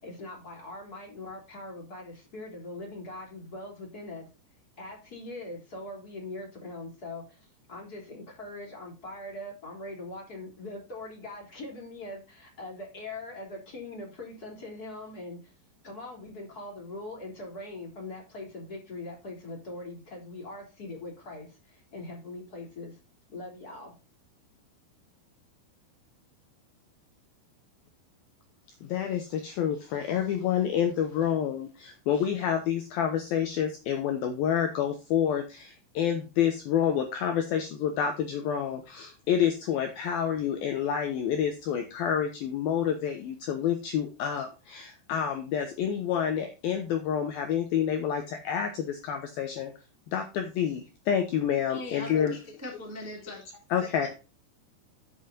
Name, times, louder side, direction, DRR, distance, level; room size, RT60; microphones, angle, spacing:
voice 1, 0.0-4.3 4.8-15.5 15.8-23.0 23.3-24.0, left 2 dB, 20° left, 0 dB, 3.3 m, -41 dB
voice 2, 28.8-49.7 50.1-52.4 53.7-54.1, left 9 dB, 80° left, 6 dB, 2.2 m, -28 dB
voice 3, 51.7-53.4, left 1 dB, 5° right, 0 dB, 1.3 m, -40 dB
11.5 x 7.2 x 2.7 m, 0.30 s
omnidirectional pair, 5.7 m